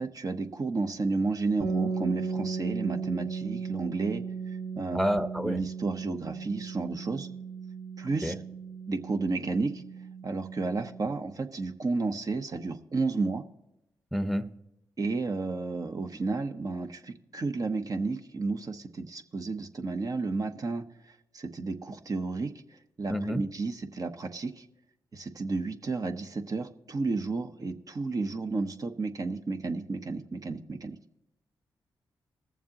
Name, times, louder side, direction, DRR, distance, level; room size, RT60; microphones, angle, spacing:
voice 1, 0.0-4.2 4.8-5.0 5.4-7.3 8.0-8.3 8.9-9.8 10.2-13.4 15.0-20.8 21.3-22.5 23.0-24.6 25.1-31.0, right 3 dB, 45° right, 7 dB, 1.0 m, -32 dB
sound 1, 1.6-11.3, right 5 dB, 75° right, 1.4 m, -36 dB
voice 2, 4.9-5.6 8.2-8.3 14.1-14.5 23.1-23.4, equal, ahead, 11 dB, 0.8 m, -28 dB
20.5 x 7.2 x 2.9 m, 0.89 s
supercardioid pair, 50°, 9 cm